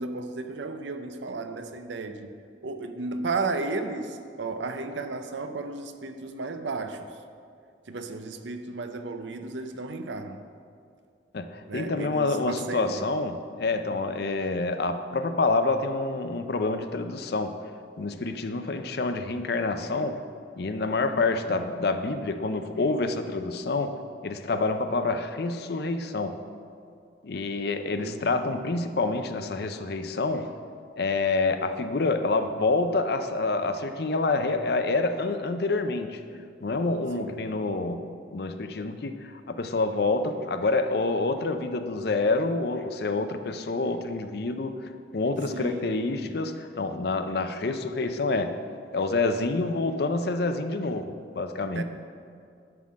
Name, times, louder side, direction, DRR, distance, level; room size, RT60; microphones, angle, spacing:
voice 1, 0.0-2.3 2.6-7.1 7.9-10.4 11.7-13.1 28.0-28.4 37.2-37.4 45.5-46.3 51.7-51.8, right 3 dB, 75° right, 8 dB, 0.6 m, -34 dB
voice 2, 11.3-17.6 18.0-20.2 20.6-24.0 24.2-26.4 27.2-30.5 31.0-36.2 36.6-48.6 48.9-51.8, left 3 dB, 55° left, 8 dB, 0.5 m, -27 dB
11.0 x 3.7 x 7.4 m, 2.3 s
head